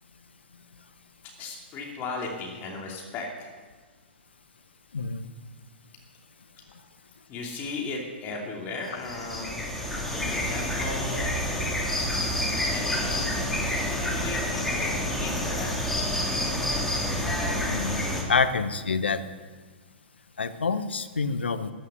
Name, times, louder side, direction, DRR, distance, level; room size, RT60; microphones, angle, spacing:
voice 1, 1.2-3.5 6.6-6.7 7.3-9.6 10.1-11.6 12.7-13.3 13.7-16.2, left 3 dB, 30° left, 0 dB, 2.6 m, -37 dB
voice 2, 4.9-5.3 17.6-19.2 20.4-21.7, left 4 dB, 75° left, 11 dB, 1.1 m, -27 dB
sound 1, 8.9-18.2, left 1 dB, 5° left, 2.3 m, -28 dB
14.0 x 11.0 x 6.9 m, 1.4 s
figure-of-eight pair, 115°, 6 cm